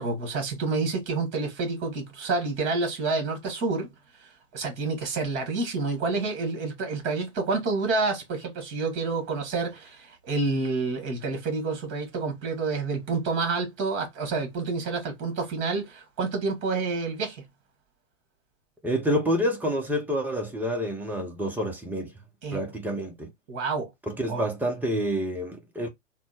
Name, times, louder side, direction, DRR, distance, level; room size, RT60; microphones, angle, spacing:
voice 1, 0.0-3.9 4.5-17.5 22.4-22.6 23.5-23.9 24.2-24.4, right 3 dB, 30° right, 2.1 m, -28 dB
voice 2, 18.8-22.1 22.5-23.3 24.1-25.9, equal, 5° right, 0.8 m, -28 dB
4.0 x 2.3 x 4.3 m
hypercardioid pair, 120°, 37 cm